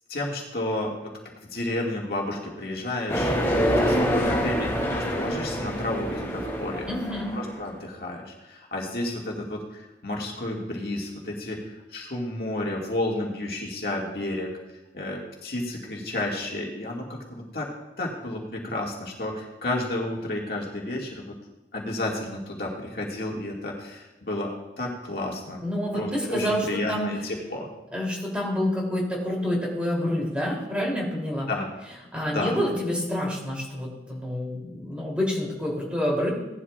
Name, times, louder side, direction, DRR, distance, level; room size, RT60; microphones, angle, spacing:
voice 1, 0.1-1.1 1.4-6.9 7.3-11.6 11.9-14.5 14.9-17.7 18.0-21.3 21.7-25.6 25.9-27.7 31.5-31.7 32.3-32.6, left 1 dB, 60° left, -2 dB, 2.0 m, -31 dB
sound 1, 3.1-7.6, equal, 15° left, 2.8 m, -26 dB
voice 2, 6.9-7.3 25.6-27.1 27.9-31.5 32.1-36.3, equal, 5° right, -3 dB, 3.0 m, -28 dB
17.5 x 11.0 x 2.4 m, 1.0 s
head